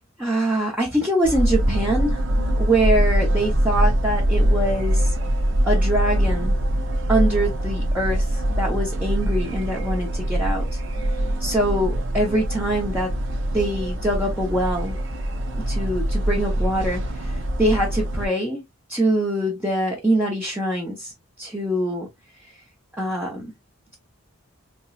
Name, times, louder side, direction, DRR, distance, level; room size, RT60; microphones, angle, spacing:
voice 1, 0.2-2.3 2.6-5.1 5.6-6.6 7.1-10.8 11.4-13.1 13.5-15.0 15.7-18.6 18.9-21.1 21.4-22.1 23.0-23.4, right 1 dB, 10° right, 0.7 m, -24 dB
sound 1, 1.2-18.3, right 1 dB, 60° right, 0.8 m, -23 dB
4.3 x 2.9 x 2.3 m
head